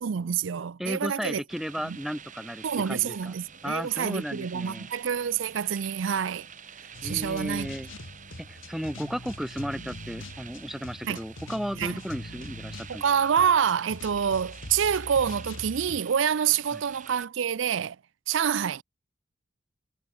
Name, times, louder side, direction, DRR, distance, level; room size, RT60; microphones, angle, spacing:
voice 1, 0.0-1.4 1.9-2.0 2.6-6.5 7.0-7.7 11.0-11.2 11.8-12.0 12.9-18.0 18.3-18.8, right 8 dB, 80° right, 0.5 m, -27 dB
voice 2, 0.8-3.3 3.6-4.9 7.0-7.9 8.5-13.0 16.7-16.8, equal, ahead, 2.3 m, -34 dB
sound 1, 1.5-17.3, right 7 dB, 40° right, 6.5 m, -48 dB
sound 2, 6.9-16.0, left 1 dB, 85° left, 2.9 m, -43 dB
head